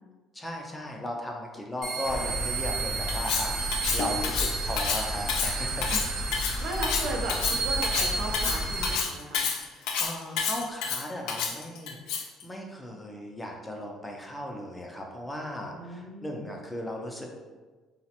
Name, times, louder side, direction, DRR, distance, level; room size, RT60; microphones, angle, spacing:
voice 1, 0.3-5.9 9.8-17.3, left 1 dB, 10° left, 0 dB, 0.4 m, -37 dB
sound 1, 1.8-9.0, right 5 dB, 40° right, 0.9 m, -33 dB
sound 2, 2.0-8.9, left 1 dB, 40° left, 0.7 m, -34 dB
Cutlery silverware, 3.1-12.4, left 6 dB, 85° left, 0.3 m, -29 dB
voice 2, 6.4-9.4 15.8-16.6, right 2 dB, 65° right, 1 dB, 0.5 m, -36 dB
3.1 x 2.0 x 2.8 m, 1.3 s
cardioid pair, 135°, 0 cm